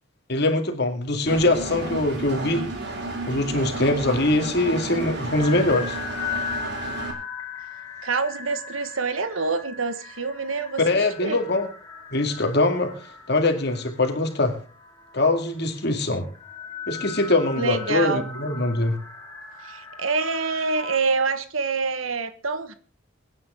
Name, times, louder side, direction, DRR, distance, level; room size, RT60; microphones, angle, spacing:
voice 1, 0.3-2.7 3.3-6.0 10.8-11.7 12.1-12.9 13.3-14.6 15.1-16.3 16.9-19.0, left 2 dB, 55° left, 5 dB, 2.2 m, -22 dB
Engine, 1.3-7.1, right 2 dB, 55° right, 2.9 m, -32 dB
sound 1, 4.8-21.0, left 6 dB, 15° left, 3.6 m, -38 dB
voice 2, 8.0-11.4 17.6-18.3 19.6-22.7, right 4 dB, 85° right, 11 dB, 1.5 m, -26 dB
24.0 x 9.3 x 3.7 m, 0.38 s
head